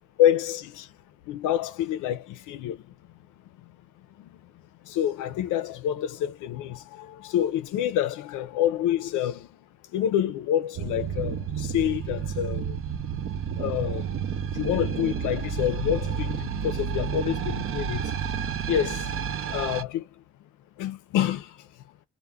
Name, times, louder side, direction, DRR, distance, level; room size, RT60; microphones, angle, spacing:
voice 1, 0.2-0.7 1.3-2.9 4.0-9.6 9.8-12.8 13.6-14.1 14.5-18.2 18.6-19.2 19.5-20.2 20.8-21.7, left 11 dB, 85° left, 0.5 m, -28 dB
sound 1, 10.7-19.8, right 7 dB, 45° right, 0.5 m, -30 dB
2.2 x 2.1 x 3.4 m
cardioid pair, 90°, 30 cm